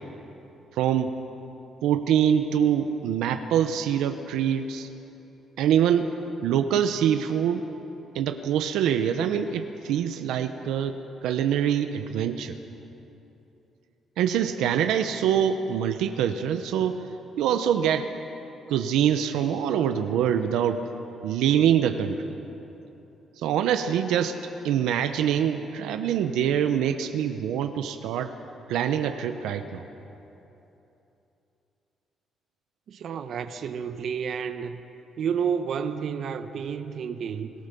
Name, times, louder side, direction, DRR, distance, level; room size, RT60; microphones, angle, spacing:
voice 1, 0.7-1.1 1.8-4.9 5.6-6.1 6.4-7.6 8.1-10.9 11.2-12.6 14.2-17.0 17.4-18.1 18.7-20.8 21.2-22.2 23.4-24.4 24.6-28.3 28.7-29.8, right 9 dB, 90° right, 7 dB, 0.9 m, -24 dB
voice 2, 32.9-34.8 35.2-37.5, right 7 dB, 65° right, 9 dB, 1.1 m, -30 dB
23.5 x 17.0 x 6.9 m, 3.0 s
cardioid pair, 90°, 0 cm